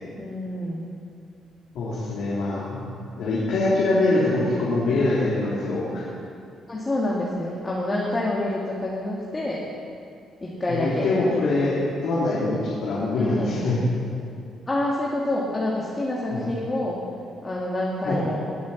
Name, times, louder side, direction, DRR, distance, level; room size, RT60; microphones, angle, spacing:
voice 1, 0.2-0.9 6.7-9.6 10.4-11.4 13.1-13.6 14.7-17.0 17.4-18.4, left 1 dB, 25° left, -5 dB, 2.3 m, -27 dB
voice 2, 1.7-6.0 10.7-11.8 12.0-13.8 16.3-16.5 18.0-18.2, left 2 dB, 80° left, -7 dB, 3.4 m, -24 dB
20.5 x 7.3 x 7.3 m, 2.4 s
cardioid pair, 90°, 0 cm